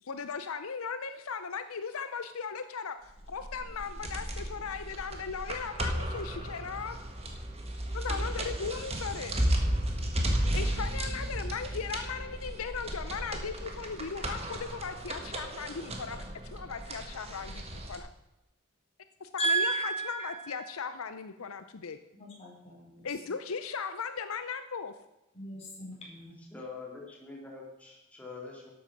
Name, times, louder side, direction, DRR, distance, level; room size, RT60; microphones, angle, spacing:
voice 1, 0.0-7.0 7.9-9.4 10.5-16.2 16.5-18.1 19.2-22.0 23.0-24.9, left 5 dB, 75° left, 10 dB, 0.7 m, -37 dB
sound 1, 3.2-18.0, right 1 dB, 30° right, 1.6 m, -34 dB
voice 2, 19.4-20.3 22.1-23.1 25.3-26.3, right 3 dB, 30° left, -3 dB, 4.5 m, -33 dB
voice 3, 26.5-28.7, left 4 dB, 5° left, -3 dB, 2.6 m, -44 dB
12.0 x 8.7 x 6.1 m, 0.96 s
head